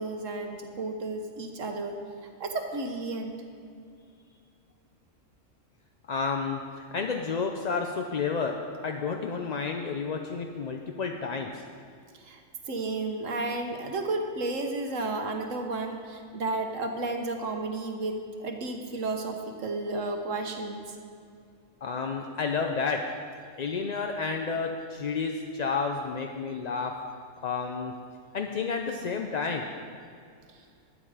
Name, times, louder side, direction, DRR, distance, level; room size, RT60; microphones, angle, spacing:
voice 1, 0.0-3.4 12.1-12.4 12.7-21.0 30.5-30.6, right 2 dB, 70° right, 4 dB, 1.4 m, -33 dB
voice 2, 6.1-8.5 8.8-11.6 21.8-23.0 23.6-26.9 27.4-27.9 28.3-29.7, left 5 dB, 50° left, 3 dB, 0.5 m, -31 dB
12.5 x 9.4 x 4.9 m, 2.4 s
omnidirectional pair, 1.4 m